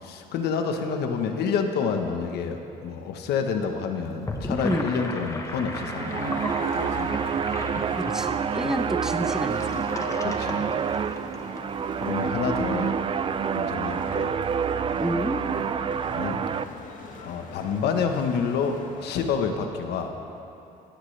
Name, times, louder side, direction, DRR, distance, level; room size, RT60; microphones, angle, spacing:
voice 1, 0.0-6.4 6.7-7.3 8.6-8.7 10.2-10.7 12.0-12.9 13.5-14.3 16.1-16.4 17.2-20.1, left 6 dB, 75° left, 5 dB, 1.2 m, -28 dB
Gurgling / Sink (filling or washing), 4.1-11.6, left 2 dB, 20° left, 1.2 m, -36 dB
sound 1, 5.5-16.6, right 7 dB, 30° right, 0.4 m, -28 dB
sound 2, 6.1-19.3, left 3 dB, 50° left, 1.8 m, -42 dB
voice 2, 8.0-9.8 15.0-15.4, equal, 5° right, 5 dB, 0.9 m, -29 dB
16.5 x 16.5 x 3.4 m, 2.8 s
cardioid pair, 110°, 17 cm